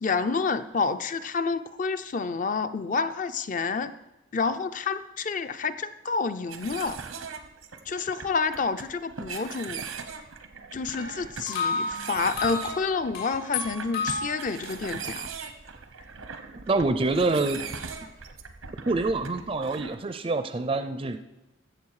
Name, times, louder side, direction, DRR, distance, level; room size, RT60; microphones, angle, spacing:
voice 1, 0.0-3.9 4.3-7.0 7.9-9.8 10.7-15.3, left 4 dB, 40° left, 11 dB, 0.5 m, -29 dB
sound 1, 6.5-20.0, right 5 dB, 90° right, 1.0 m, -40 dB
sound 2, 11.0-14.7, left 4 dB, 80° left, 3.8 m, -32 dB
voice 2, 16.7-17.6 18.9-21.2, right 3 dB, 25° right, 9 dB, 0.4 m, -26 dB
15.0 x 6.9 x 4.8 m, 1.1 s
head